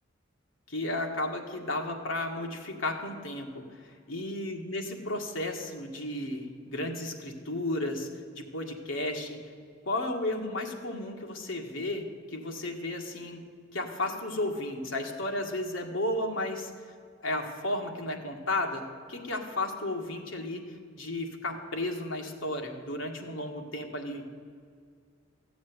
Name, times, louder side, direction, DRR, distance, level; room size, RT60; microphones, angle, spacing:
voice 1, 0.7-8.1 8.3-9.4 9.8-13.4 13.7-16.7 17.2-18.8 19.1-20.6 20.9-24.2, left 1 dB, 80° left, 2 dB, 1.9 m, -33 dB
15.0 x 7.2 x 9.7 m, 2.2 s
head